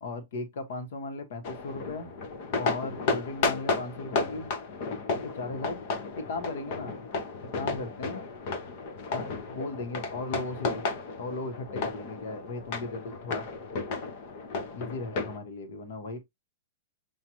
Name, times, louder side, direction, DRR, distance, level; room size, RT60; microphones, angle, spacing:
voice 1, 0.0-2.1 2.5-4.5 5.1-5.8 6.1-7.1 7.5-8.2 9.1-10.8 11.2-13.5 14.7-16.2, left 3 dB, 50° left, 1.1 m, -37 dB
sound 1, 1.4-15.4, left 4 dB, 35° left, 0.6 m, -33 dB
6.1 x 2.5 x 2.9 m
supercardioid pair, 175°, 0 cm